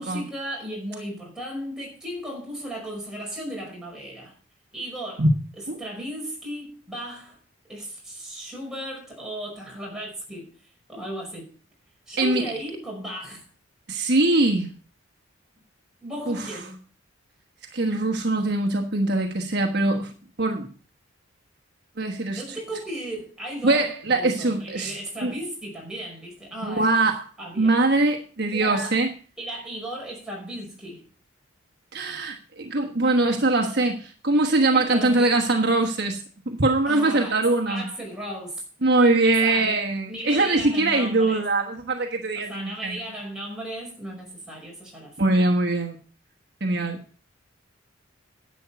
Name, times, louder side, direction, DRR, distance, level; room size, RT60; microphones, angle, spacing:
voice 1, 0.0-4.4 4.7-5.3 5.8-7.4 7.7-10.6 10.9-11.5 12.1-13.4 16.0-16.8 22.3-23.8 24.1-26.9 27.4-27.8 28.5-29.0 29.4-31.0 34.7-35.3 36.9-38.6 39.2-41.4 42.4-45.2, right 1 dB, 5° right, 5.3 m, -35 dB
voice 2, 12.2-12.5 13.9-14.7 16.3-16.6 17.7-20.7 22.0-22.4 23.6-24.9 25.2-25.3 26.6-27.2 27.6-29.1 31.9-37.8 38.8-43.0 45.2-46.0 46.6-47.0, right 2 dB, 55° right, 1.2 m, -22 dB
11.0 x 8.5 x 5.8 m
head